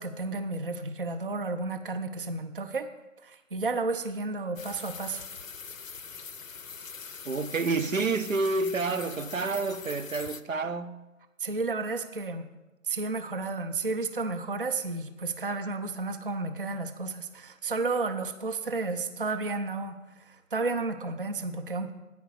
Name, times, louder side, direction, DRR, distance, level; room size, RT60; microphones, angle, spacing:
voice 1, 0.0-2.9 3.2-5.2 11.4-12.5 12.8-21.9, right 3 dB, 45° right, 0.5 m, -32 dB
sound 1, 4.6-10.4, left 5 dB, 80° left, 0.6 m, -43 dB
voice 2, 7.2-11.0, right 3 dB, 80° right, 0.7 m, -29 dB
9.4 x 5.1 x 8.0 m
figure-of-eight pair, 150°, 39 cm